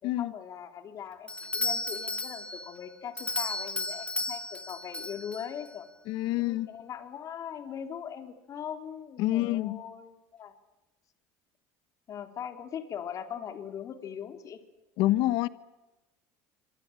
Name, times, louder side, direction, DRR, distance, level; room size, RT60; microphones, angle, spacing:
voice 1, 0.0-5.9 6.4-10.5 12.1-14.6, left 8 dB, 45° left, 4.0 m, -40 dB
Doorbell, 1.3-5.7, left 2 dB, 15° left, 2.0 m, -34 dB
voice 2, 6.1-6.7 9.2-9.8 15.0-15.5, left 16 dB, 70° left, 1.2 m, -27 dB
26.0 x 25.5 x 9.0 m
supercardioid pair, 100°, 8 cm